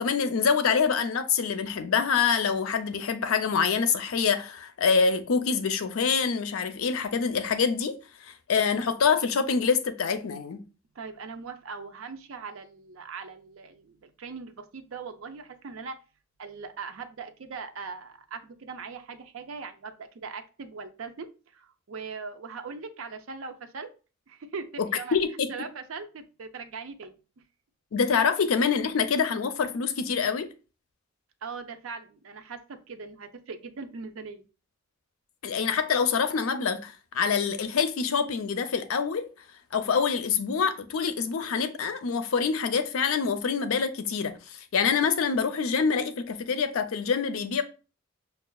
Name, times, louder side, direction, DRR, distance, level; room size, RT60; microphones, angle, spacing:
voice 1, 0.0-8.0 8.3-10.6 25.1-25.5 27.9-30.5 35.4-39.3 39.7-47.6, left 6 dB, 85° left, 0.5 m, -26 dB
voice 2, 10.9-16.0 16.4-23.9 24.3-25.2 25.5-27.2 31.4-34.5, right 5 dB, 75° right, 0.5 m, -40 dB
5.4 x 2.3 x 2.3 m
head